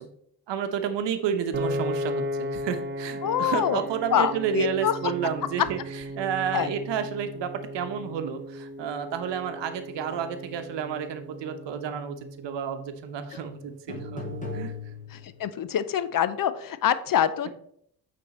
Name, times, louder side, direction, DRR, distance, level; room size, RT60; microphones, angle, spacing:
voice 1, 0.5-14.2 14.5-14.7, right 8 dB, 70° right, 8 dB, 0.9 m, -31 dB
Piano, 1.5-13.8, equal, 25° right, 0.5 m, -36 dB
voice 2, 3.2-3.9 4.1-4.9 6.5-6.7 15.1-17.5, left 9 dB, 50° left, 14 dB, 0.6 m, -25 dB
sound 1, 13.3-13.5 13.9-15.5, left 3 dB, 15° left, 2.1 m, -37 dB
8.5 x 3.5 x 4.2 m, 0.68 s
supercardioid pair, 65°, 45 cm